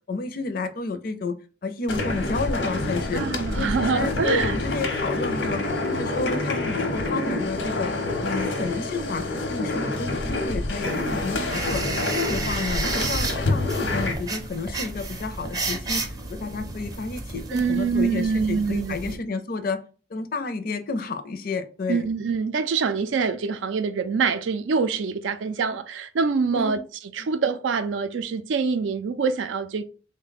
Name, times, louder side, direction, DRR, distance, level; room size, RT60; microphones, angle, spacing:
voice 1, 0.1-1.3 1.6-3.2 3.5-7.9 8.2-9.2 9.5-11.8 12.1-16.0 16.3-19.8 20.1-22.0 26.5-26.8 27.2-27.3, left 4 dB, 50° left, 0.5 m, -30 dB
sound 1, 1.9-14.1, left 2 dB, 85° left, 0.9 m, -27 dB
voice 2, 3.1-4.6 17.5-19.2 21.9-26.8 27.1-29.8, right 5 dB, 90° right, 0.4 m, -25 dB
sound 2, 10.8-19.2, right 3 dB, 20° right, 0.5 m, -32 dB
3.6 x 2.2 x 4.0 m
head